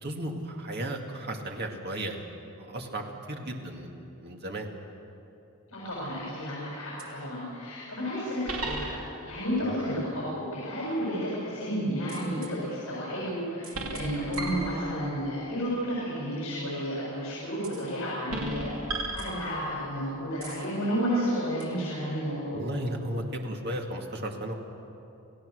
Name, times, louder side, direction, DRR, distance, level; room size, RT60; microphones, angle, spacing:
voice 1, 0.0-4.7 9.6-9.7 22.5-24.5, right 1 dB, 50° right, 2 dB, 2.2 m, -35 dB
voice 2, 5.7-8.9 9.2-22.6, equal, 65° left, -7 dB, 7.3 m, -32 dB
sound 1, 5.9-6.3 7.0-7.1 8.5-9.4 12.1-12.5 13.6-15.2 17.6-17.9 18.3-19.9 20.4-20.7 21.6-21.7, right 2 dB, 65° right, 2.9 m, -36 dB
29.0 x 16.5 x 6.5 m, 2.8 s
head